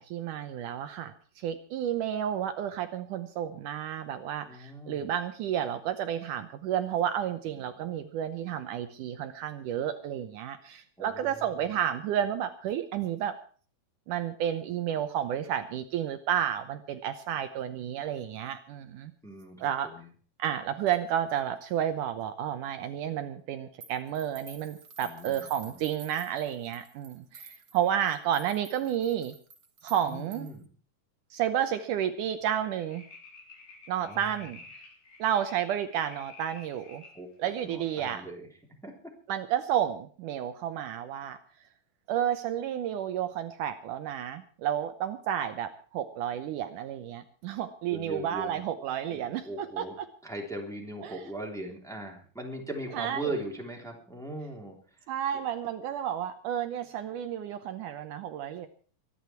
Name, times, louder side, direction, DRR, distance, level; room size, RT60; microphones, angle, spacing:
voice 1, 0.0-13.3 14.1-19.1 19.6-19.9 20.4-29.3 29.8-30.5 31.3-33.1 33.9-34.6 35.2-37.0 37.4-38.2 39.3-41.4 42.1-49.9 51.0-51.2 52.9-53.3 55.1-58.7, right 10 dB, 75° right, 9 dB, 2.3 m, -31 dB
voice 2, 4.4-5.1 11.0-11.8 19.2-20.1 25.0-25.8 30.1-30.7 34.0-34.3 37.1-38.5 38.8-39.1 47.9-49.9 50.2-55.1, right 1 dB, ahead, 0 dB, 3.1 m, -40 dB
sound 1, 23.8-30.6, right 5 dB, 45° right, 1.5 m, -51 dB
sound 2, 32.7-37.2 37.7-37.8, left 3 dB, 75° left, 5.8 m, -51 dB
24.0 x 10.5 x 4.6 m, 0.41 s
omnidirectional pair, 3.9 m